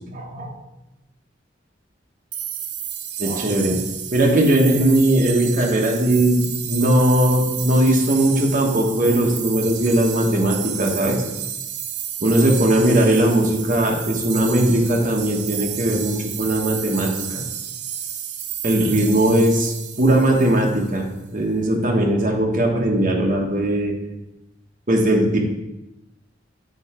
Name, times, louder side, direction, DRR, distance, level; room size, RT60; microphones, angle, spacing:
voice 1, 0.1-0.5 3.2-3.8 4.1-11.2 12.2-17.4 18.6-23.9 24.9-25.4, right 1 dB, 45° right, 0 dB, 1.2 m, -19 dB
sound 1, 2.3-21.0, right 9 dB, 65° right, 0.7 m, -31 dB
7.2 x 4.6 x 4.4 m, 0.94 s
head